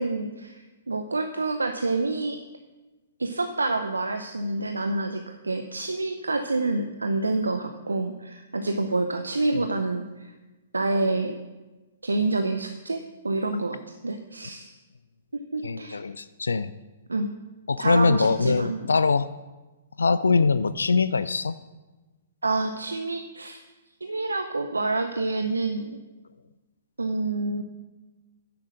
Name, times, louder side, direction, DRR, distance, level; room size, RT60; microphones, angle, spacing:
voice 1, 0.0-2.4 3.2-10.3 10.7-11.4 12.0-14.7 15.3-16.0 17.1-17.3 17.8-18.8 22.4-23.6 24.0-26.0 27.0-27.6, right 2 dB, 80° right, 8 dB, 0.7 m, -28 dB
voice 2, 15.6-16.7 17.7-19.3 20.0-21.5, left 4 dB, 70° left, 14 dB, 0.4 m, -22 dB
10.5 x 7.7 x 6.4 m, 1.2 s
figure-of-eight pair, 120°, 0 cm